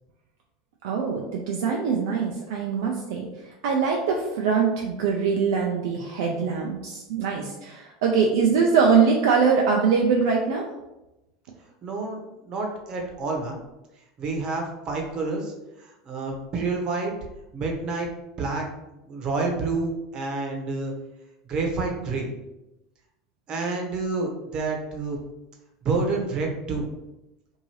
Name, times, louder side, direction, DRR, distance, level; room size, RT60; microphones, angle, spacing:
voice 1, 0.8-3.3 3.6-10.7, right 5 dB, 70° right, -1 dB, 0.4 m, -23 dB
voice 2, 11.8-13.6 14.2-17.1 17.5-18.1 18.4-18.7 19.0-20.9 21.5-22.3 23.5-25.2 25.8-26.9, right 3 dB, 40° right, 1 dB, 0.9 m, -28 dB
2.8 x 2.6 x 3.0 m, 0.94 s
hypercardioid pair, 85°, 2 cm